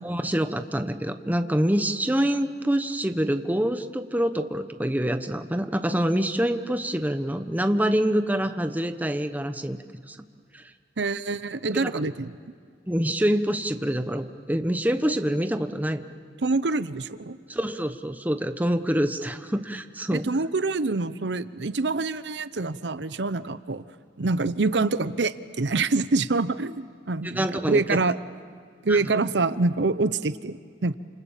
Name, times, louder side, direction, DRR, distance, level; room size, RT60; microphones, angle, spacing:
voice 1, 0.0-9.8 10.1-10.2 10.5-10.6 11.7-11.9 12.9-16.0 17.5-20.3 27.2-27.8 28.9-29.1, equal, 10° right, 8 dB, 1.0 m, -26 dB
voice 2, 11.0-12.3 16.4-17.4 20.1-23.8 24.2-28.2 28.8-30.9, right 3 dB, 75° right, 14 dB, 0.8 m, -26 dB
29.0 x 27.5 x 7.3 m, 2.2 s
head